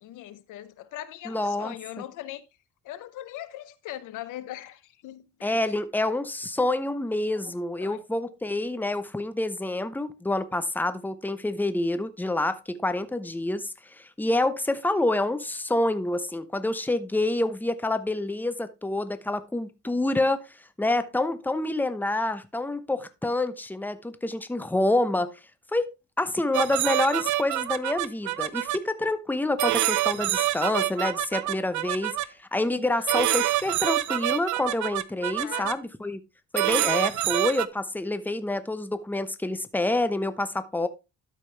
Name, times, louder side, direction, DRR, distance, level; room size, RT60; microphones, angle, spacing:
voice 1, 0.0-2.4 2.8-5.6 7.4-8.0 32.9-33.1 35.4-35.8, left 13 dB, 90° left, 0.9 m, -40 dB
voice 2, 1.2-1.7 5.4-20.4 20.8-25.3 25.7-25.9 26.2-32.1 32.5-36.2 36.5-40.9, left 2 dB, 5° left, 0.8 m, -27 dB
sound 1, 26.5-28.8 29.6-32.3 33.1-35.7 36.5-37.7, right 15 dB, 75° right, 0.6 m, -26 dB
12.5 x 5.3 x 3.3 m
cardioid pair, 90°, 30 cm